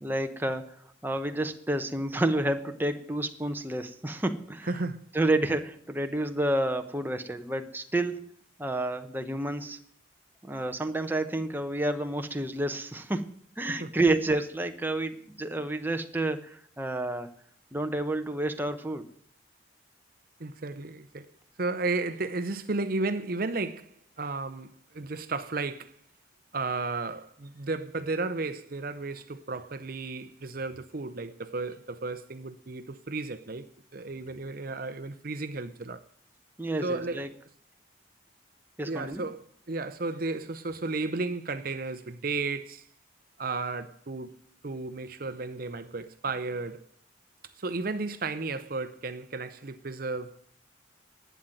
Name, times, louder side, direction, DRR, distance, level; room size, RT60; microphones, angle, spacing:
voice 1, 0.0-4.7 5.1-8.3 8.6-9.8 10.4-17.3 17.7-19.1 36.6-37.3 38.8-39.2, right 1 dB, 10° right, 0.9 m, -30 dB
voice 2, 4.7-5.1 13.7-13.9 20.4-21.3 21.6-25.9 26.5-33.7 33.9-36.0 36.8-37.3 38.8-42.9 43.4-44.4 44.6-46.9 47.6-50.4, right 3 dB, 50° right, 0.7 m, -33 dB
11.5 x 9.3 x 9.0 m
head